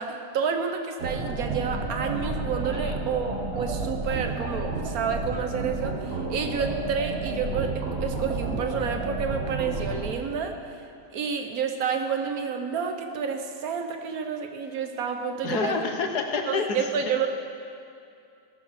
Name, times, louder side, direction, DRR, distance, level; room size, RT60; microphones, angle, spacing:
voice 1, 0.0-10.6 11.1-15.9 16.5-17.3, right 6 dB, 65° right, 5 dB, 1.4 m, -29 dB
sound 1, 1.0-10.1, right 3 dB, 40° right, 1.5 m, -31 dB
voice 2, 15.4-16.9, left 4 dB, 70° left, 4 dB, 1.7 m, -28 dB
17.0 x 7.0 x 6.4 m, 2.5 s
omnidirectional pair, 1.8 m